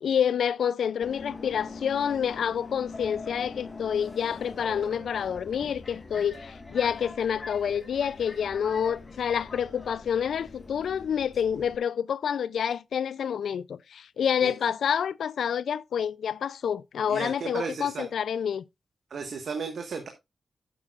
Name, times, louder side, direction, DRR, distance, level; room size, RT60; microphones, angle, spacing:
voice 1, 0.0-18.6, left 8 dB, 90° left, 0.4 m, -28 dB
Subway metro underground, 1.0-11.8, left 3 dB, 35° left, 1.6 m, -42 dB
voice 2, 17.1-18.1 19.1-20.1, right 5 dB, 70° right, 1.4 m, -34 dB
11.5 x 8.6 x 2.4 m
wide cardioid pair, 100°, 0 cm